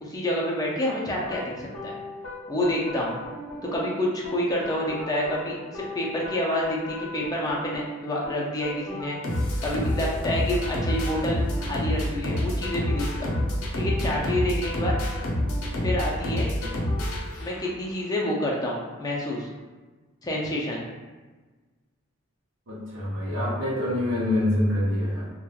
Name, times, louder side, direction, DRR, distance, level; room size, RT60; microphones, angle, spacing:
voice 1, 0.0-2.0 2.5-3.2 3.7-13.4 13.8-15.0 15.8-16.7 17.4-19.5 20.2-20.8, left 1 dB, 20° left, -3 dB, 0.4 m, -28 dB
sound 1, 1.2-17.9, left 1 dB, 85° left, 0.6 m, -30 dB
voice 2, 22.7-25.3, left 1 dB, 65° right, -7 dB, 0.6 m, -25 dB
3.0 x 2.2 x 2.3 m, 1.3 s
head